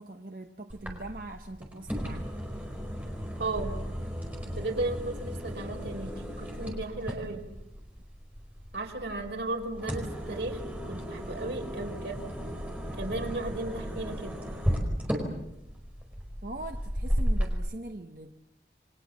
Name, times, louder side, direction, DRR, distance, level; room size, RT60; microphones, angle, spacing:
voice 1, 0.0-2.3 16.4-18.3, right 2 dB, 50° right, 4 dB, 1.1 m, -42 dB
sound 1, 0.7-17.5, equal, 10° right, 4.9 m, -35 dB
voice 2, 3.4-3.8 4.6-6.1 6.4-7.4 8.7-12.2 13.0-14.3, right 2 dB, 85° right, 3 dB, 4.5 m, -35 dB
29.0 x 23.0 x 7.3 m, 0.89 s
head